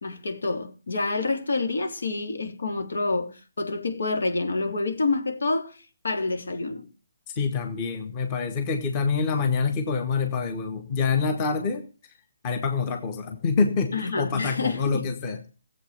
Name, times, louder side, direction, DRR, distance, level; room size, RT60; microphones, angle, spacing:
voice 1, 0.0-5.8 6.0-6.9 13.9-15.1, left 3 dB, 80° left, 3.5 m, -28 dB
voice 2, 7.4-11.8 12.4-15.4, left 5 dB, 20° left, 1.4 m, -26 dB
15.5 x 7.9 x 6.6 m
hypercardioid pair, 170°, 0 cm